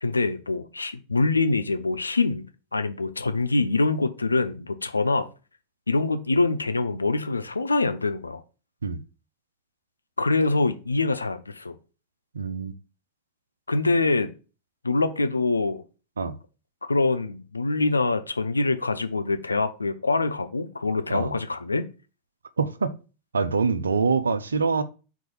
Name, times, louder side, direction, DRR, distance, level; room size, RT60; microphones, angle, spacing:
voice 1, 0.0-2.4 2.7-5.3 5.9-8.4 10.2-11.8 13.7-14.3 14.8-15.8 16.8-21.9, left 3 dB, 80° left, 0.6 m, -24 dB
voice 2, 12.3-12.7 16.2-16.4 21.1-21.3 22.6-22.9 23.3-24.8, right 5 dB, 75° right, 0.6 m, -25 dB
4.6 x 4.0 x 5.6 m
figure-of-eight pair, 90°, 0 cm